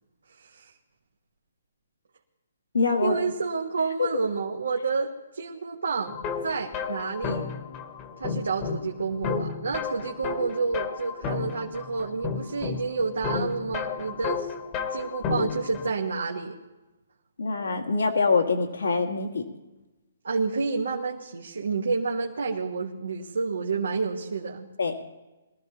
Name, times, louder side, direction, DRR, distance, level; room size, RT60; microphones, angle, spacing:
voice 1, 0.4-0.7 3.0-6.1 6.4-7.4 8.2-14.5 14.9-16.6 20.2-24.7, right 4 dB, 85° right, 0 dB, 1.4 m, -29 dB
voice 2, 2.7-3.1 4.0-4.1 17.4-19.4 24.8-25.0, left 4 dB, 90° left, 3 dB, 2.0 m, -24 dB
sound 1, 6.1-15.9, left 6 dB, 25° left, 1.2 m, -33 dB
22.5 x 14.0 x 3.0 m, 1.1 s
hypercardioid pair, 155°, 0 cm